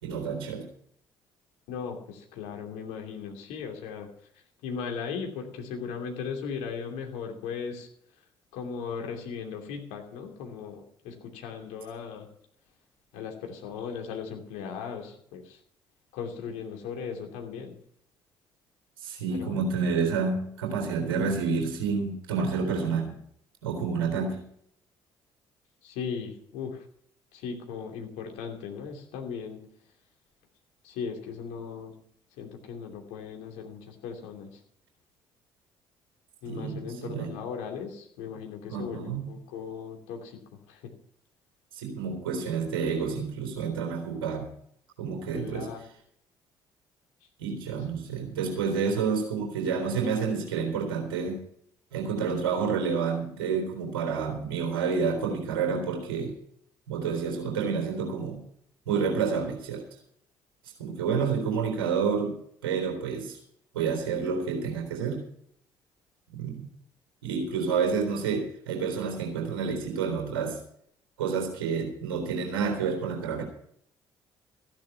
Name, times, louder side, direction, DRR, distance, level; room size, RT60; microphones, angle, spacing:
voice 1, 0.0-0.7 19.0-23.1 23.6-24.4 36.5-37.3 38.7-39.3 41.7-44.5 45.0-45.7 47.4-51.4 51.9-56.4 56.9-58.4 58.9-59.9 60.8-62.3 62.6-63.4 63.7-65.2 66.3-66.7 67.2-70.6 71.2-73.4, right 5 dB, 80° right, 3 dB, 3.9 m, -29 dB
voice 2, 1.7-4.1 4.6-7.9 8.5-12.3 13.1-15.6 16.1-17.8 19.3-19.6 25.8-26.8 27.3-29.6 30.8-31.9 32.4-34.6 36.4-40.9 45.3-45.8, left 6 dB, 70° left, 3 dB, 2.8 m, -37 dB
15.0 x 10.5 x 5.7 m, 0.66 s
figure-of-eight pair, 50°, 12 cm